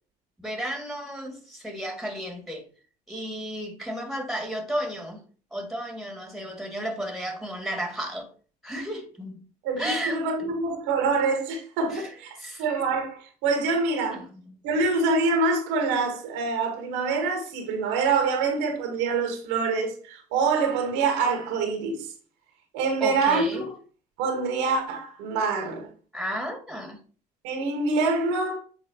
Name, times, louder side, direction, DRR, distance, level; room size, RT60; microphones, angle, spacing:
voice 1, 0.4-2.7 3.1-5.2 5.5-8.3 8.6-9.3 9.8-10.2 11.9-12.6 14.1-14.3 23.0-23.7 26.1-27.0, equal, ahead, 2.4 m, -33 dB
voice 2, 9.6-14.2 14.6-22.1 22.7-23.6 24.2-25.9 27.4-28.6, right 4 dB, 70° right, 1.7 m, -25 dB
8.2 x 4.3 x 2.9 m
hypercardioid pair, 60°, 20 cm